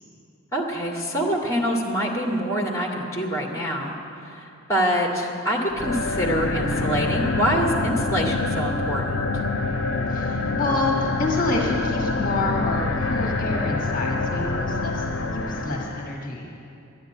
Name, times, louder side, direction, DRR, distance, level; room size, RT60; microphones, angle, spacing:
voice 1, 0.5-9.3, equal, 15° left, -1 dB, 2.0 m, -25 dB
sound 1, 5.7-16.2, left 3 dB, 65° left, 0.7 m, -26 dB
voice 2, 10.1-16.5, left 2 dB, 45° left, 0 dB, 1.4 m, -28 dB
12.5 x 9.5 x 9.9 m, 2.7 s
head